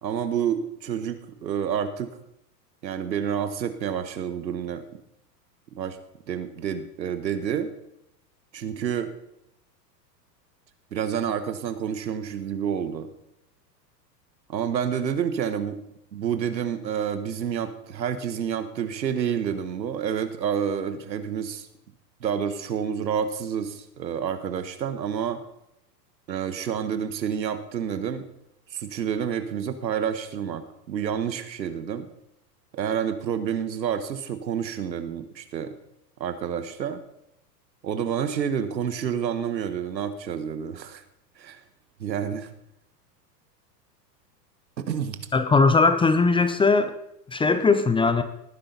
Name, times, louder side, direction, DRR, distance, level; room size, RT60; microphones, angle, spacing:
voice 1, 0.0-2.2 2.8-4.8 5.7-6.0 6.3-7.7 8.5-9.1 10.9-13.1 14.5-15.8 16.1-21.7 22.2-25.4 26.3-28.3 28.7-32.1 32.7-35.7 36.2-37.0 37.8-41.0 41.4-41.6 42.0-42.5 44.8-45.2, right 8 dB, 85° right, 10 dB, 1.5 m, -29 dB
voice 2, 45.3-47.0 47.3-48.2, left 4 dB, 10° left, 11 dB, 0.7 m, -19 dB
18.0 x 10.0 x 4.0 m, 0.80 s
hypercardioid pair, 100°, 50 cm